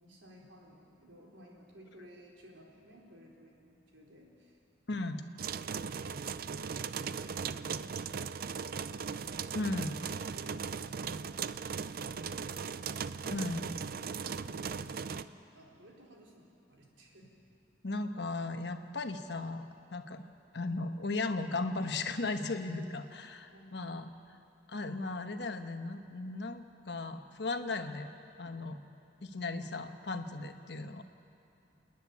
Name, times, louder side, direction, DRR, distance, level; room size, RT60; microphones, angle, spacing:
voice 1, 0.0-4.6 13.8-17.3 23.5-24.0, equal, 85° right, -2 dB, 4.1 m, -57 dB
voice 2, 4.9-5.2 9.5-10.0 13.3-13.7 17.8-20.2 20.5-24.1 24.7-28.1 28.4-28.8 29.2-31.0, left 3 dB, 65° left, 7 dB, 1.1 m, -36 dB
sound 1, 5.4-15.2, right 6 dB, 50° right, 0.5 m, -38 dB
28.5 x 10.5 x 9.6 m, 2.8 s
head